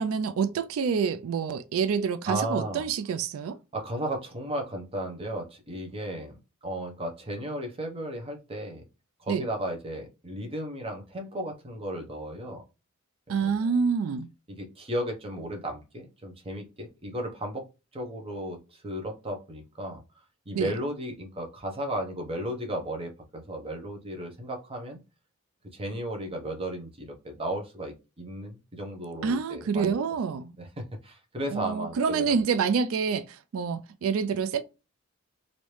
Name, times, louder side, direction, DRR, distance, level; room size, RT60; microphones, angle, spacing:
voice 1, 0.0-3.6 9.3-9.4 13.3-14.3 20.5-20.7 29.2-30.6 31.5-34.6, right 6 dB, 90° right, 0.3 m, -27 dB
voice 2, 2.3-2.8 3.7-8.8 9.2-12.6 13.4-13.5 14.6-17.7 17.9-20.0 20.5-25.0 25.7-29.9 30.6-32.2, right 1 dB, 30° right, 0.8 m, -35 dB
3.1 x 2.6 x 3.1 m
head